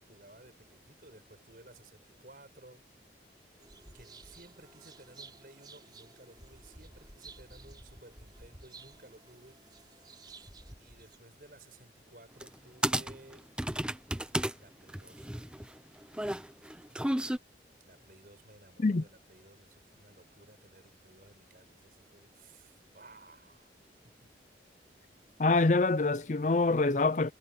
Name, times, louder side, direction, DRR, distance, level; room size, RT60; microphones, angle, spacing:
voice 1, 0.1-2.8 3.9-9.6 10.8-13.5 14.6-15.4 17.8-23.7 24.0-24.3, right 2 dB, 50° right, 6.8 m, -57 dB
sound 1, 3.6-11.2, right 3 dB, 25° right, 4.6 m, -53 dB
sound 2, 12.4-12.5 12.8-14.5 14.9-17.4, right 1 dB, 5° right, 0.7 m, -32 dB
voice 2, 25.4-27.3, left 3 dB, 40° left, 0.5 m, -25 dB
head